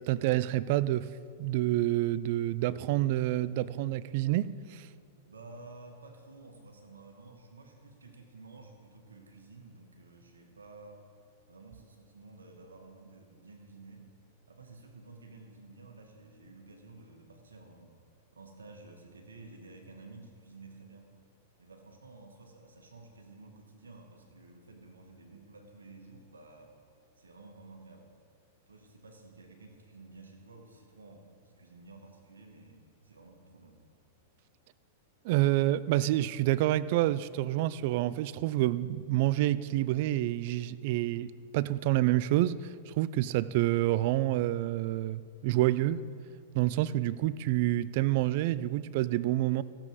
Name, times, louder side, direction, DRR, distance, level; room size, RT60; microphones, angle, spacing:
voice 1, 0.1-1.1 1.4-4.9 35.2-46.1 46.5-49.6, right 15 dB, 55° right, 0.4 m, -28 dB
voice 2, 5.3-11.1 11.5-14.1 14.5-17.9 18.3-21.2 21.6-26.7 27.2-28.1 28.7-33.8, right 3 dB, 90° right, 1.7 m, -52 dB
15.0 x 7.5 x 4.8 m
hypercardioid pair, 105°, 0 cm